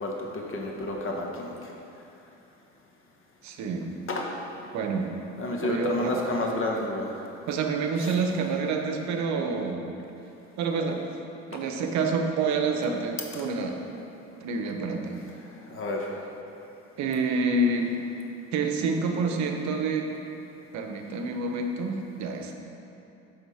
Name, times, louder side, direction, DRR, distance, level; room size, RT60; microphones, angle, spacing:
voice 1, 0.0-1.5 4.1-4.2 5.4-7.1 15.7-16.0, left 2 dB, 40° left, 0 dB, 1.2 m, -30 dB
voice 2, 3.4-3.9 4.7-5.1 5.6-6.2 7.5-9.9 10.6-11.0 11.5-13.8 14.4-15.2 17.0-17.9 18.5-20.1 20.7-22.5, right 3 dB, 65° right, 4 dB, 0.8 m, -28 dB
8.2 x 3.6 x 5.6 m, 2.9 s
supercardioid pair, 90°, 31 cm